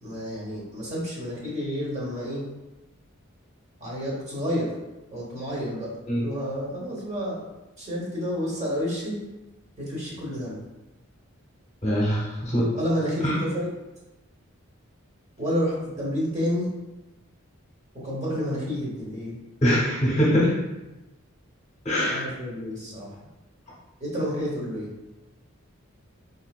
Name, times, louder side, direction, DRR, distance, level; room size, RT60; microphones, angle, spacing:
voice 1, 0.0-2.4 3.8-4.7 5.1-5.9 6.2-7.5 7.8-9.2 9.8-10.6 12.7-13.7 15.4-16.7 17.9-19.4 22.1-23.1 24.0-24.9, equal, 30° right, -5 dB, 1.0 m, -30 dB
voice 2, 11.8-12.6 13.2-13.3 19.6-20.5 21.8-22.2, equal, 30° left, -6 dB, 0.9 m, -22 dB
3.8 x 2.7 x 2.3 m, 1.0 s
head